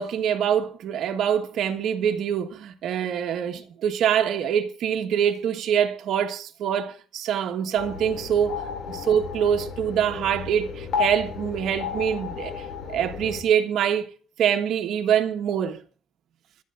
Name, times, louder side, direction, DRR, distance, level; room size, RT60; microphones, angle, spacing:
voice 1, 0.0-8.6 8.9-12.7 12.9-14.0 14.4-15.8, right 8 dB, 65° right, 1.4 m, -24 dB
sound 1, 7.8-13.4, left 6 dB, 55° left, 2.6 m, -33 dB
26.5 x 11.5 x 2.6 m
cardioid pair, 145°, 0 cm